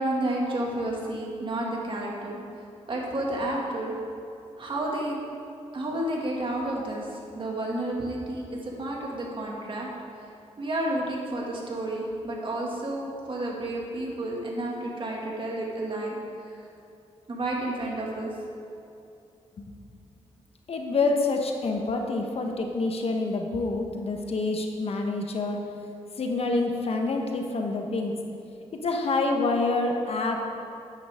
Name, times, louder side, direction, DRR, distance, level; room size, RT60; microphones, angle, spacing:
voice 1, 0.0-2.4 2.9-3.9 4.6-5.2 5.7-9.9 10.6-16.2 17.3-18.3, right 1 dB, 45° right, -2 dB, 2.2 m, -31 dB
voice 2, 20.7-25.6 26.2-28.1 28.8-30.5, left 3 dB, 55° left, 3 dB, 1.1 m, -27 dB
10.0 x 9.3 x 3.6 m, 2.6 s
cardioid pair, 75°, 12 cm